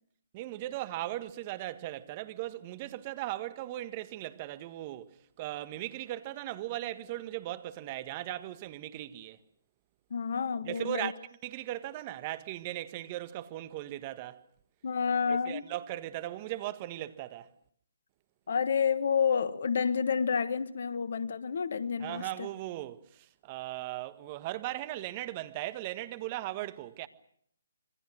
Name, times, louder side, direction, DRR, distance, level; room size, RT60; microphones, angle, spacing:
voice 1, 0.3-9.4 10.6-14.4 15.3-17.5 22.0-27.1, right 15 dB, 30° right, 1.6 m, -38 dB
voice 2, 10.1-11.1 14.8-15.7 18.5-22.5, left 6 dB, 55° left, 1.5 m, -29 dB
26.5 x 24.0 x 6.3 m
figure-of-eight pair, 145°, 0 cm